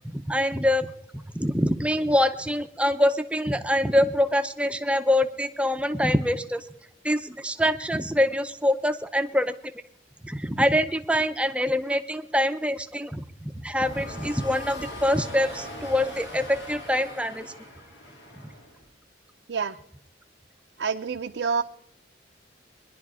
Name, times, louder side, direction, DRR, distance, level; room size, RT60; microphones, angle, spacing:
voice 1, 0.1-6.7 7.0-9.5 10.2-17.5, left 1 dB, 5° right, 9 dB, 0.6 m, -25 dB
sound 1, 13.7-18.9, equal, 75° left, 3.2 m, -40 dB
voice 2, 20.8-21.6, right 5 dB, 80° right, 4 dB, 0.6 m, -27 dB
21.5 x 11.0 x 4.9 m, 0.73 s
head